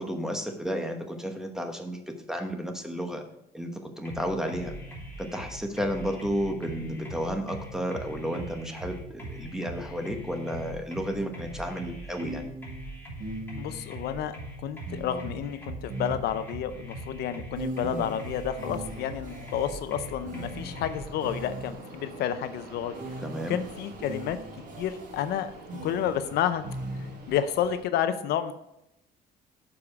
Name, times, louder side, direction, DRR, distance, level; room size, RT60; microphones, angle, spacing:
voice 1, 0.0-3.2 3.5-4.7 5.2-12.5 17.8-18.1 23.2-23.6, equal, 5° right, 4 dB, 1.1 m, -32 dB
sound 1, 4.0-21.0, right 1 dB, 10° left, 3.0 m, -41 dB
sound 2, 12.2-14.0 14.9-16.8 17.6-22.1 22.9-27.4, right 1 dB, 50° right, 1.6 m, -40 dB
voice 2, 13.6-22.9 23.5-24.4 24.8-25.5 25.8-26.6 26.9-28.5, left 9 dB, 75° left, 12 dB, 0.6 m, -30 dB
Fixed-wing aircraft airplane, 18.7-27.8, right 2 dB, 85° right, 1.8 m, -47 dB
7.1 x 4.9 x 5.9 m, 0.83 s
cardioid pair, 110°, 17 cm